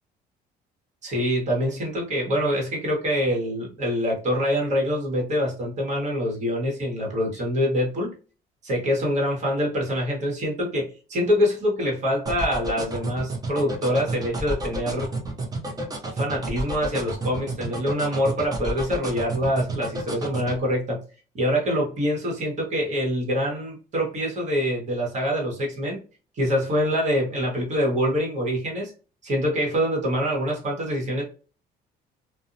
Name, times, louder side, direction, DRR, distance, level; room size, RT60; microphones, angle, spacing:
voice 1, 1.0-8.1 8.6-15.1 16.1-21.0 21.3-26.0 26.4-28.9 29.2-31.2, equal, 45° right, -1 dB, 1.2 m, -25 dB
sound 1, 12.3-20.6, right 2 dB, 20° right, 0.6 m, -31 dB
2.5 x 2.0 x 2.6 m, 0.36 s
cardioid pair, 110°, 17 cm